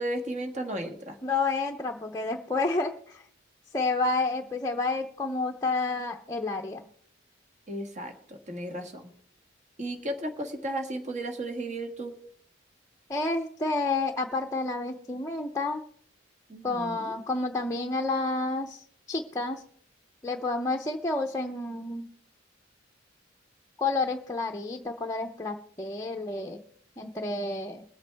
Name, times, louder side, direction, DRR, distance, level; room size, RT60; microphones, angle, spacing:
voice 1, 0.0-1.2 7.7-9.1 9.8-12.1 16.5-17.1, right 1 dB, 40° right, 5 dB, 1.6 m, -34 dB
voice 2, 1.2-3.2 3.7-6.8 13.1-15.8 16.6-19.6 20.2-22.1 23.8-26.6 27.0-27.8, left 3 dB, 15° left, 2 dB, 0.6 m, -30 dB
21.5 x 8.0 x 3.4 m, 0.64 s
head